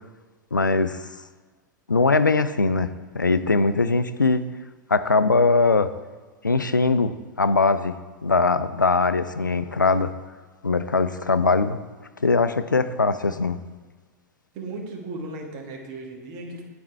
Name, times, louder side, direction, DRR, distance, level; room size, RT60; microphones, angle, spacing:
voice 1, 0.5-1.0 1.9-4.5 4.9-5.9 6.4-8.0 8.2-10.1 10.6-11.8 12.2-13.6, left 3 dB, 90° left, 12 dB, 0.4 m, -21 dB
voice 2, 14.5-16.6, right 2 dB, 40° right, 1 dB, 1.5 m, -36 dB
9.2 x 4.3 x 4.4 m, 1.4 s
figure-of-eight pair, 100°, 10 cm